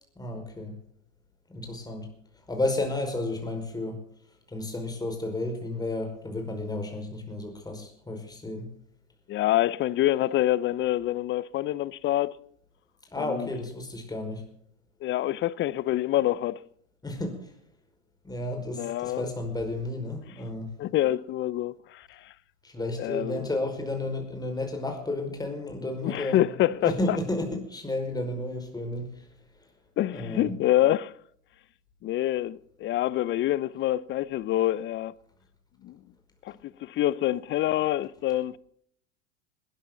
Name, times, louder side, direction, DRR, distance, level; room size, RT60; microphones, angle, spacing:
voice 1, 0.2-0.7 1.5-2.1 2.5-4.0 4.5-8.7 13.1-14.4 17.0-17.5 18.2-20.7 22.6-29.2 30.1-30.6, left 2 dB, 10° left, 5.3 m, -32 dB
voice 2, 9.3-12.3 13.2-13.5 15.0-16.6 18.7-19.2 20.8-22.3 23.0-23.5 26.0-27.2 30.0-31.1 32.0-35.1 35.8-36.0 36.4-38.6, left 14 dB, 30° left, 0.7 m, -26 dB
21.0 x 13.5 x 4.0 m
hypercardioid pair, 90°, 36 cm